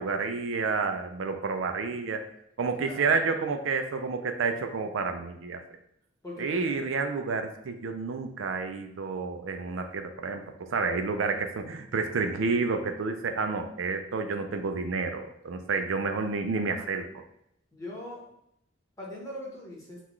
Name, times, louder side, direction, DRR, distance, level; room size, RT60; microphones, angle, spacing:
voice 1, 0.0-2.2 2.6-5.6 6.4-17.2, right 4 dB, 80° right, 6 dB, 0.4 m, -30 dB
voice 2, 2.8-3.3 6.2-6.7 17.7-18.3 19.0-20.0, left 1 dB, 15° left, -4 dB, 1.2 m, -41 dB
5.7 x 2.4 x 3.1 m, 0.75 s
head